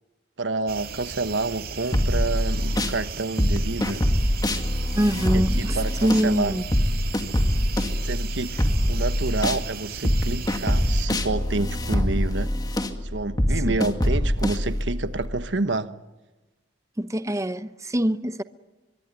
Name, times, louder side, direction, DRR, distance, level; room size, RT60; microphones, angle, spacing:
voice 1, 0.4-4.1 5.1-6.5 8.0-12.5 13.1-15.9, right 3 dB, 80° right, 1.3 m, -29 dB
sound 1, 0.7-11.1, right 5 dB, 55° right, 2.3 m, -37 dB
sound 2, 1.9-3.0 3.4-9.6 10.0-15.3, equal, 20° left, 2.2 m, -24 dB
voice 2, 4.9-6.7 13.6-13.8 17.0-18.4, equal, 15° right, 0.8 m, -24 dB
24.0 x 23.5 x 9.6 m
head